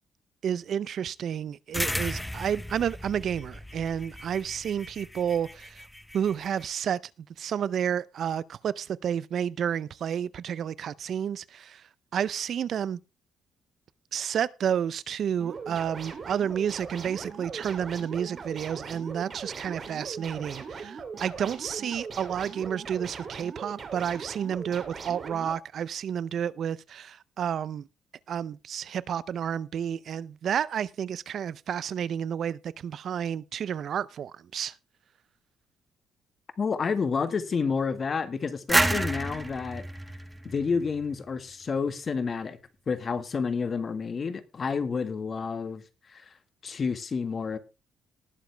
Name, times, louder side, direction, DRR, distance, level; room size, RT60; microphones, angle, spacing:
voice 1, 0.4-5.8 6.1-7.0 7.4-11.8 12.1-13.0 14.1-27.9 28.3-34.7, right 8 dB, 60° right, 0.5 m, -30 dB
sound 1, 1.7-6.6, left 1 dB, 5° left, 0.8 m, -37 dB
sound 2, 15.4-25.5, right 5 dB, 45° right, 2.9 m, -40 dB
voice 2, 36.6-39.8 40.4-42.6 42.9-45.8 46.1-46.3 46.6-47.6, left 5 dB, 40° left, 1.6 m, -29 dB
sound 3, 38.7-41.4, right 1 dB, 15° right, 1.4 m, -28 dB
19.5 x 7.1 x 3.4 m
cardioid pair, 90°, 0 cm